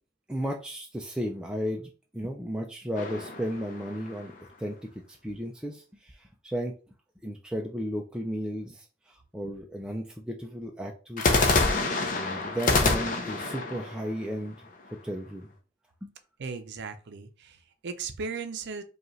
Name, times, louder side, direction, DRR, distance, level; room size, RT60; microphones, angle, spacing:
voice 1, 0.3-6.8 7.2-14.6 14.9-15.5 16.0-16.1, equal, 5° right, 0 dB, 0.4 m, -35 dB
sound 1, 3.0-4.4 11.2-15.1, left 3 dB, 40° left, 0.7 m, -27 dB
voice 2, 16.4-18.8, right 5 dB, 55° right, 9 dB, 0.6 m, -37 dB
5.1 x 2.4 x 3.1 m, 0.35 s
head